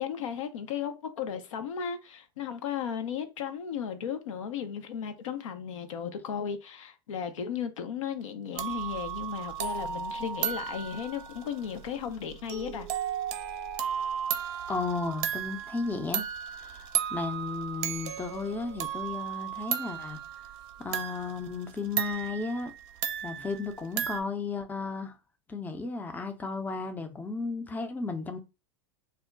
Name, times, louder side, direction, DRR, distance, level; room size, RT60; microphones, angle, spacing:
voice 1, 0.0-12.9, left 7 dB, 80° left, 0.5 m, -35 dB
sound 1, 8.5-24.2, right 9 dB, 55° right, 0.5 m, -35 dB
voice 2, 14.7-16.2 16.6-20.2 20.8-22.7 23.2-25.1 25.5-28.4, left 4 dB, 10° left, 0.4 m, -34 dB
2.2 x 2.1 x 3.7 m
hypercardioid pair, 95°, 17 cm